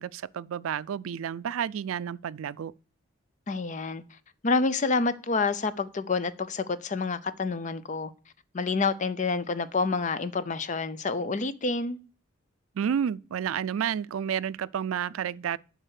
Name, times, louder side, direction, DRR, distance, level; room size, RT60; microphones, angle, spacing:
voice 1, 0.0-2.7 12.8-15.6, right 8 dB, 90° right, 0.3 m, -30 dB
voice 2, 3.5-4.0 4.4-8.1 8.5-12.0, left 4 dB, 35° left, 0.5 m, -28 dB
7.6 x 5.0 x 6.5 m
head